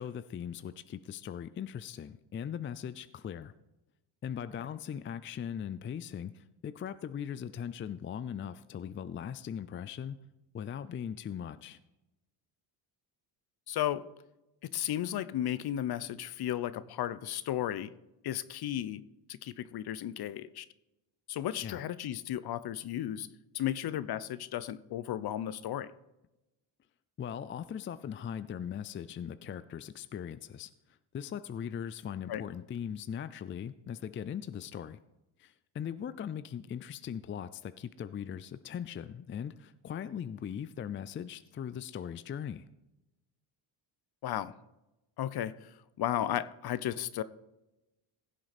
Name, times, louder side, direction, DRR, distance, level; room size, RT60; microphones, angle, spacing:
voice 1, 0.0-3.5 4.2-10.2 10.5-11.8 21.6-21.8 27.2-30.7 31.1-35.0 35.4-42.6, left 8 dB, 25° left, 14 dB, 0.4 m, -39 dB
voice 2, 13.7-14.0 14.7-17.9 18.2-19.0 19.3-20.7 21.3-23.3 23.5-25.9 32.3-32.4 44.2-44.5 45.2-47.2, left 12 dB, 50° left, 16 dB, 0.7 m, -34 dB
16.0 x 7.5 x 4.3 m, 0.95 s
cardioid pair, 90°, 48 cm